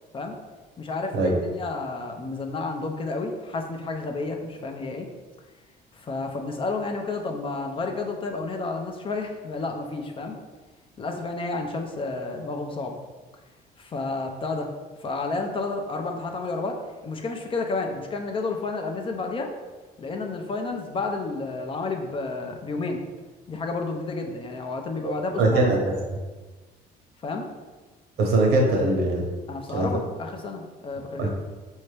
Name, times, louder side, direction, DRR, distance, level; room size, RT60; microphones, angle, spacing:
voice 1, 0.8-5.1 5.9-10.4 11.0-13.0 13.8-14.7 15.0-19.5 20.0-23.0 23.5-25.7 27.2-27.5 29.5-31.3, left 3 dB, 30° left, 3 dB, 0.5 m, -31 dB
voice 2, 25.4-25.8 28.2-29.3 29.7-29.9 31.2-31.3, right 2 dB, 75° right, 0 dB, 1.0 m, -21 dB
4.3 x 2.7 x 3.3 m, 1.3 s
cardioid pair, 110°, 17 cm